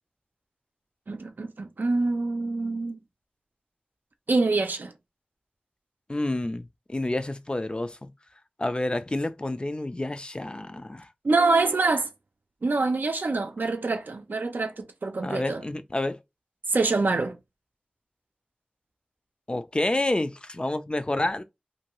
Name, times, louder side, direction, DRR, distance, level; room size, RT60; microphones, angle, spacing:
voice 1, 1.1-3.0 4.3-4.9 11.2-12.1 12.6-15.6 16.7-17.4, right 3 dB, 85° right, 0.4 m, -25 dB
voice 2, 6.1-8.1 8.6-11.1 15.2-16.2 19.5-21.4, left 2 dB, 30° left, 0.3 m, -29 dB
2.6 x 2.2 x 2.9 m
wide cardioid pair, 45°, 3 cm